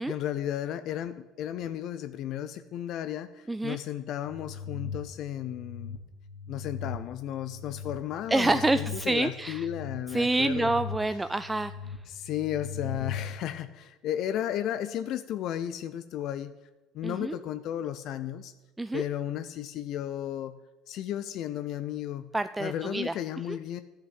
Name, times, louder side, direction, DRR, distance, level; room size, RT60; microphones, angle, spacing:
voice 1, 0.0-6.0 6.5-10.8 12.1-16.6 16.9-18.5 18.9-20.6 20.9-22.3 22.6-23.8, left 11 dB, 60° left, 11 dB, 0.5 m, -34 dB
sound 1, 4.3-13.4, left 6 dB, 85° left, 0.9 m, -40 dB
voice 2, 8.3-9.6 10.1-11.7 17.0-17.4 18.8-19.0 22.3-23.1, right 2 dB, 15° right, 12 dB, 0.4 m, -27 dB
10.5 x 5.8 x 8.2 m, 1.1 s
hypercardioid pair, 70°, 0 cm